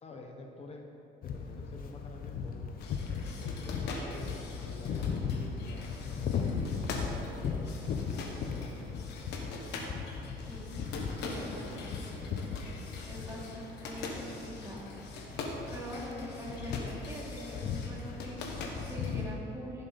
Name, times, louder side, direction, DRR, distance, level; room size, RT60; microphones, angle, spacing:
voice 1, 0.0-0.9 1.2-2.8 3.4-7.8 8.3-8.9 9.2-9.3, left 2 dB, 40° left, 2 dB, 1.2 m, -49 dB
sound 1, 1.2-19.3, left 6 dB, 60° left, 1.0 m, -38 dB
sound 2, 2.8-19.3, left 3 dB, 80° left, 1.5 m, -43 dB
voice 2, 11.1-12.7 13.0-14.9 15.7-19.9, equal, 15° right, -4 dB, 2.7 m, -44 dB
15.0 x 7.3 x 4.3 m, 2.9 s
cardioid pair, 110°, 17 cm